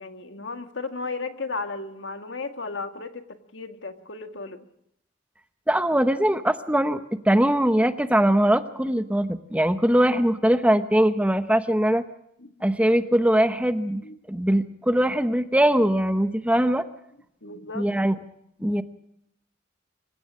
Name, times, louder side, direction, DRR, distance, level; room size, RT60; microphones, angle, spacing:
voice 1, 0.0-4.7 12.4-12.5 14.0-14.2 17.4-17.9, left 3 dB, 70° left, 7 dB, 1.8 m, -34 dB
voice 2, 5.7-12.0 12.6-14.0 14.3-16.9 17.7-18.1 18.6-18.8, right 1 dB, 5° right, 10 dB, 0.9 m, -21 dB
26.0 x 16.5 x 6.3 m, 0.77 s
head